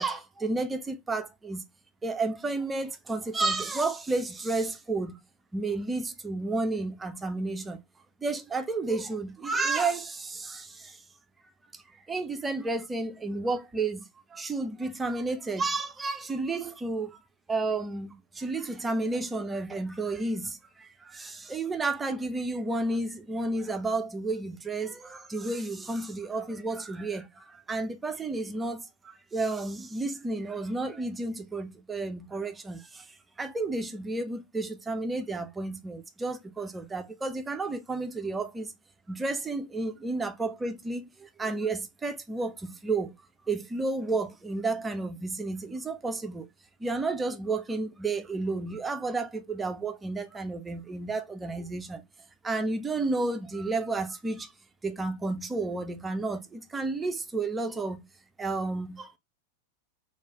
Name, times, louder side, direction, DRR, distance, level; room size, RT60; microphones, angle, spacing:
voice 1, 0.0-1.6 2.0-5.2 5.5-7.8 8.2-11.0 11.7-11.8 12.1-17.2 17.5-38.7 39.1-43.1 43.5-46.5 46.8-52.0 52.4-54.5 54.8-58.1 58.4-59.2, right 3 dB, 15° right, 0.4 m, -31 dB
3.1 x 2.4 x 2.8 m
figure-of-eight pair, 90°, 0 cm